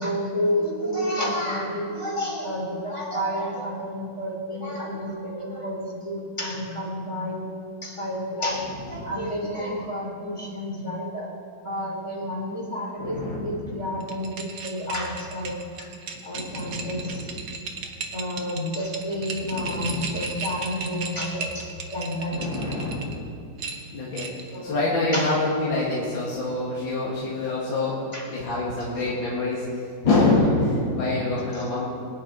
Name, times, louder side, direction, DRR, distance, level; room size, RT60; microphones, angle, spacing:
voice 1, 0.0-7.5 7.8-11.3 11.6-15.9 16.2-17.3 18.1-22.5 24.5-25.3 28.1-28.3 28.9-29.0 31.5-31.7, equal, 15° left, -3 dB, 3.1 m, -30 dB
voice 2, 13.0-13.5 16.3-17.3 19.4-20.2 22.3-23.2 23.9-28.0 28.3-29.6 30.0-31.9, left 2 dB, 65° left, -6 dB, 2.8 m, -26 dB
sound 1, 14.0-23.1 23.6-24.6, right 4 dB, 65° right, 1.9 m, -35 dB
23.0 x 10.5 x 4.2 m, 2.4 s
omnidirectional pair, 2.3 m